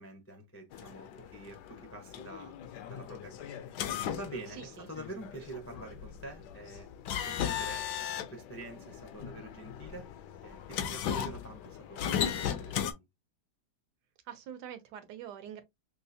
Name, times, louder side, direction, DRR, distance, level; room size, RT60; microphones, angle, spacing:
voice 1, 0.0-2.5 2.9-6.9 7.2-7.9 8.2-10.1 10.4-13.1, right 2 dB, 20° left, 0.3 m, -46 dB
sound 1, 0.7-12.9, left 9 dB, 80° left, 1.2 m, -37 dB
voice 2, 4.6-4.9 14.3-15.6, right 9 dB, 75° right, 1.3 m, -44 dB
5.4 x 2.0 x 2.7 m
omnidirectional pair, 1.8 m